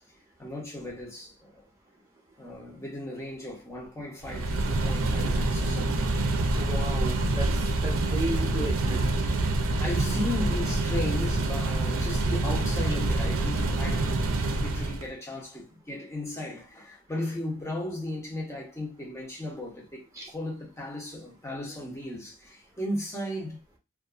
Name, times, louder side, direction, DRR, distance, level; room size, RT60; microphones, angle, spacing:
voice 1, 0.4-1.6 2.4-6.1 9.6-23.6, left 1 dB, 15° left, 0.8 m, -36 dB
sound 1, 4.2-15.1, right 2 dB, 75° right, 0.5 m, -26 dB
voice 2, 6.6-7.5 7.8-9.2 20.1-20.3, right 1 dB, 15° right, 0.9 m, -34 dB
2.5 x 2.4 x 2.4 m
head